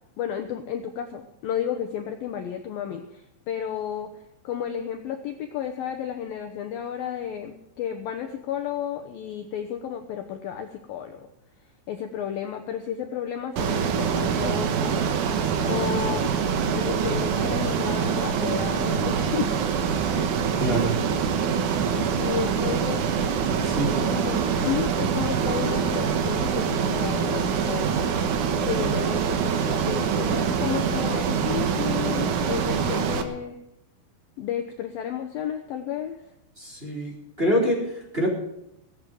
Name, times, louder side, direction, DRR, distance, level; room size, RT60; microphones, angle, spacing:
voice 1, 0.2-4.1 4.4-11.2 11.9-15.0 15.6-19.5 20.1-20.8 21.9-23.0 23.9-28.1 28.5-33.6 34.4-36.2, left 9 dB, 75° left, 5 dB, 2.1 m, -32 dB
Ocean, 13.6-33.2, right 6 dB, 75° right, 1.8 m, -25 dB
voice 2, 20.6-21.0 23.6-24.1 36.6-37.1 37.4-38.3, equal, 15° right, -2 dB, 3.8 m, -25 dB
20.0 x 8.8 x 7.7 m, 0.83 s
omnidirectional pair, 5.5 m